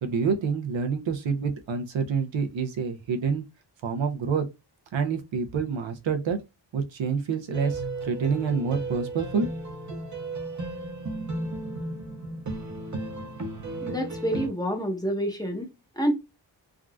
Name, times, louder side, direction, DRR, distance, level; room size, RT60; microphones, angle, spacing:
voice 1, 0.0-3.4 3.8-4.5 4.9-6.4 6.7-9.5 9.9-10.0, right 5 dB, 80° right, 0.7 m, -27 dB
sound 1, 7.5-14.5, right 2 dB, 40° right, 0.8 m, -34 dB
voice 2, 13.8-16.1, equal, 10° left, 0.8 m, -28 dB
3.6 x 2.4 x 2.3 m
wide cardioid pair, 105°, 45 cm